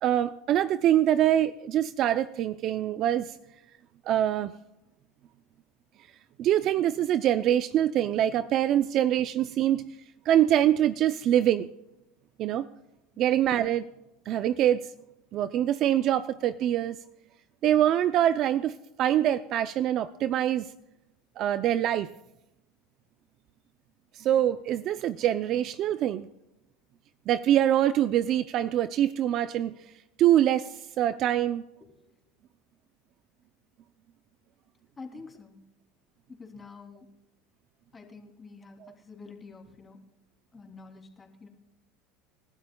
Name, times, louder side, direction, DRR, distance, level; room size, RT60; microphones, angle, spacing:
voice 1, 0.0-3.4 4.1-4.5 6.4-9.9 10.3-11.7 12.4-12.6 13.2-13.9 14.3-14.9 15.3-17.0 17.6-20.7 21.4-22.1 24.1-26.3 27.3-29.7 30.2-31.6 38.8-38.9, right 11 dB, 50° right, 13 dB, 0.5 m, -24 dB
voice 2, 35.0-35.6 36.3-37.1 37.9-40.0 40.5-41.5, left 4 dB, 20° left, 1 dB, 3.1 m, -47 dB
28.5 x 12.0 x 2.3 m, 0.91 s
supercardioid pair, 110°, 0 cm